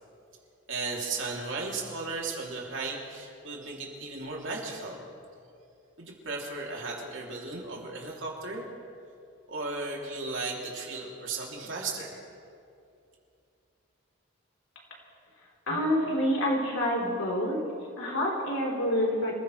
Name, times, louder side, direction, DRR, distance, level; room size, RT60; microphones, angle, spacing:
voice 1, 0.7-5.0 6.0-8.7 9.5-12.2, right 3 dB, 70° right, -2 dB, 3.1 m, -35 dB
voice 2, 15.7-17.6 18.0-19.3, equal, 90° left, -3 dB, 4.0 m, -27 dB
27.0 x 15.5 x 3.3 m, 2.5 s
head